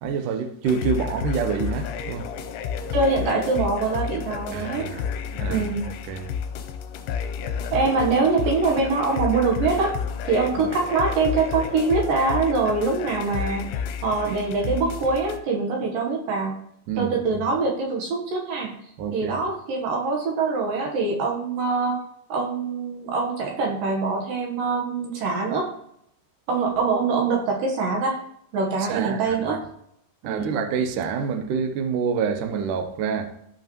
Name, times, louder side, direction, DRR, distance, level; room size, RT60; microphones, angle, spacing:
voice 1, 0.0-2.3 4.5-5.0 5.3-6.3 10.6-10.7 16.9-17.1 19.0-19.4 28.8-29.6 30.2-33.3, right 6 dB, 85° right, 1.8 m, -27 dB
sound 1, 0.6-15.4, left 7 dB, 80° left, 2.7 m, -31 dB
voice 2, 2.9-4.9 5.5-5.8 7.7-10.0 10.2-13.7 14.0-16.6 17.0-18.7 19.1-22.0 22.3-25.7 26.5-28.2 28.5-29.6 30.2-30.6, right 4 dB, 65° right, 2.4 m, -24 dB
14.0 x 5.5 x 3.0 m
omnidirectional pair, 4.9 m